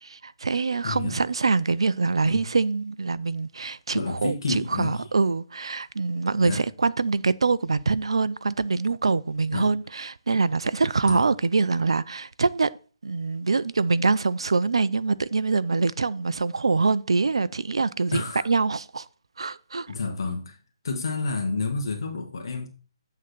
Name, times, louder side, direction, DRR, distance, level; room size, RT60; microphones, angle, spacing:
voice 1, 0.0-12.7 13.0-19.1 19.4-19.9, right 4 dB, 75° right, 0.5 m, -24 dB
voice 2, 0.8-1.2 2.2-2.5 3.9-5.1 6.4-6.6 9.5-9.7 11.0-11.2 18.1-18.5 19.9-20.6 20.8-22.7, left 3 dB, 60° left, 1.5 m, -30 dB
8.2 x 3.8 x 6.0 m
figure-of-eight pair, 145°, 3 cm